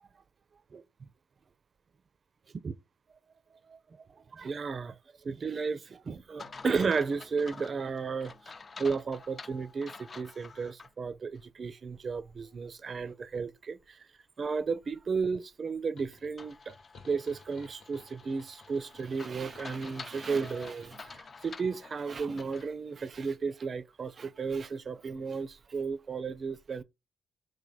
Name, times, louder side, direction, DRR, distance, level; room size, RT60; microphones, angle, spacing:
voice 1, 4.3-5.0 5.2-8.3 8.8-14.0 14.4-16.7 17.1-26.8, right 5 dB, 50° right, 0.4 m, -34 dB
sound 1, 6.4-10.9 11.3-11.4 16.4-22.7, left 4 dB, 40° left, 0.3 m, -49 dB
sound 2, 16.0-21.2, left 3 dB, 65° left, 1.0 m, -57 dB
3.1 x 2.1 x 4.1 m
hypercardioid pair, 45°, 0 cm